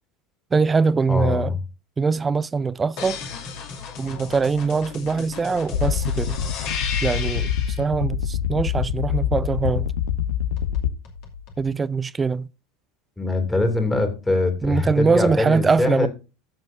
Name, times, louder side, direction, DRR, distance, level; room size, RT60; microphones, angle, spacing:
voice 1, 0.5-1.6 2.0-3.2 4.0-6.4 7.0-7.5 7.8-9.9 11.6-12.5 14.6-16.1, right 4 dB, 20° right, 0.4 m, -22 dB
voice 2, 1.1-1.6 13.2-16.1, left 2 dB, 10° left, 2.6 m, -23 dB
sound 1, 3.0-7.8 10.6-11.6, left 6 dB, 50° left, 2.5 m, -34 dB
sound 2, 5.7-10.9, left 9 dB, 65° left, 0.5 m, -25 dB
15.0 x 7.4 x 2.6 m
figure-of-eight pair, 75°, 0 cm